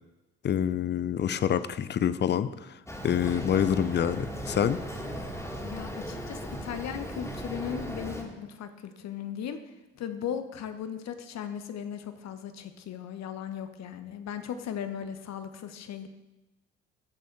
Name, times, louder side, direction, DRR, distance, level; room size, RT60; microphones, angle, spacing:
voice 1, 0.4-2.7 3.0-4.8, left 9 dB, 30° left, 14 dB, 0.6 m, -27 dB
Boat Water vehicle, 2.9-8.2, equal, 10° left, 2.6 m, -37 dB
voice 2, 5.6-9.6 9.9-16.1, left 8 dB, 45° left, 9 dB, 1.1 m, -37 dB
14.0 x 6.9 x 4.7 m, 1.0 s
figure-of-eight pair, 50°, 36 cm